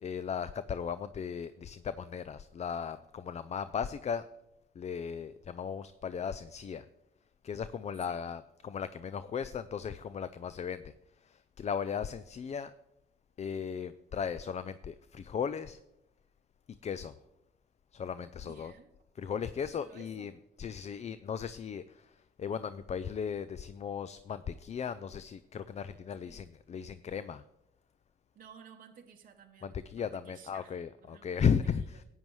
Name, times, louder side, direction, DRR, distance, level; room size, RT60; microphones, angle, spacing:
voice 1, 0.0-4.3 4.8-6.8 7.4-10.9 11.6-12.7 13.4-15.8 16.8-17.1 17.9-18.7 19.2-20.3 20.6-21.8 22.4-27.4 29.6-32.0, left 7 dB, 35° left, 0.4 m, -36 dB
voice 2, 18.4-18.9 19.8-20.3 26.2-26.4 28.3-31.9, right 7 dB, 45° right, 0.8 m, -56 dB
14.0 x 9.1 x 3.1 m
cardioid pair, 90°, 20 cm